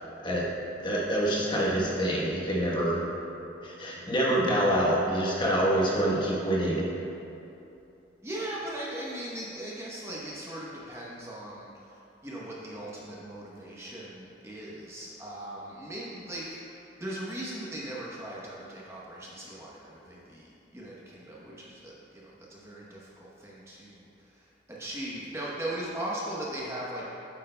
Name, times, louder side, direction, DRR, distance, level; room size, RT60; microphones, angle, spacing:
voice 1, 0.8-3.0 3.6-6.8, right 1 dB, 25° left, -4 dB, 1.0 m, -26 dB
voice 2, 8.2-27.0, right 1 dB, 15° right, -5 dB, 0.8 m, -39 dB
9.0 x 8.4 x 2.2 m, 2.8 s
head